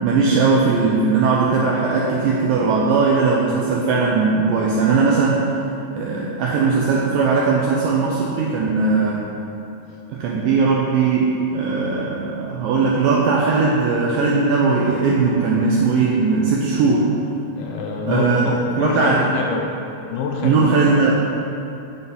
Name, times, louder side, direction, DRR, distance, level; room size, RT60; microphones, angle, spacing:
voice 1, 0.0-5.4 5.9-9.2 10.1-17.1 18.1-19.3 20.4-21.1, right 4 dB, 85° right, -3 dB, 2.0 m, -19 dB
voice 2, 17.6-19.7 20.1-20.9, left 5 dB, 80° left, 1 dB, 2.3 m, -26 dB
9.4 x 4.0 x 5.4 m, 2.9 s
omnidirectional pair, 4.7 m